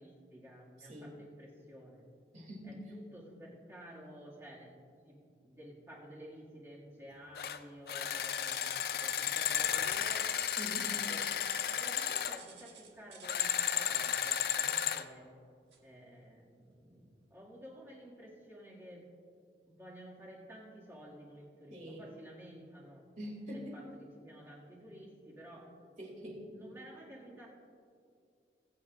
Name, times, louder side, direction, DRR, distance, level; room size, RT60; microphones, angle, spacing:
voice 1, 0.0-2.1 2.6-10.3 10.9-11.4 11.8-15.3 15.8-19.1 19.7-23.1 23.5-25.7 26.3-27.5, equal, 15° right, -6 dB, 2.0 m, -52 dB
voice 2, 0.8-1.1 2.3-2.8 10.6-10.9 21.7-22.1 23.2-23.8 26.0-26.5, equal, 45° right, -2 dB, 2.6 m, -44 dB
sound 1, 7.3-7.6 7.9-12.4 13.2-15.0, left 9 dB, 60° left, 0.4 m, -33 dB
sound 2, 8.4-14.7 15.7-16.0 16.5-16.6 17.3-17.4, right 6 dB, 90° right, 1.7 m, -54 dB
21.0 x 8.8 x 2.5 m, 2.3 s
head